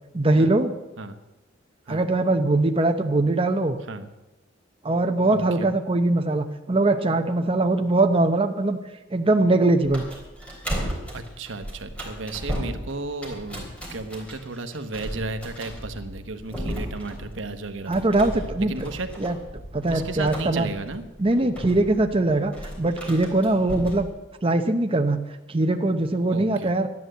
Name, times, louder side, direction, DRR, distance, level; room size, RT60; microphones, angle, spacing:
voice 1, 0.1-0.7 1.9-3.8 4.8-8.8 9.1-10.1 17.9-18.7 19.2-19.4 19.7-20.7 21.2-24.1 24.4-25.2 25.5-26.9, right 2 dB, 30° right, 5 dB, 0.8 m, -21 dB
voice 2, 5.3-5.7 11.1-18.0 18.7-19.1 19.9-21.0 26.3-26.7, right 3 dB, 70° right, 8 dB, 1.2 m, -34 dB
sound 1, 9.8-24.1, equal, 5° left, 3.6 m, -35 dB
12.5 x 11.0 x 7.9 m, 1.0 s
head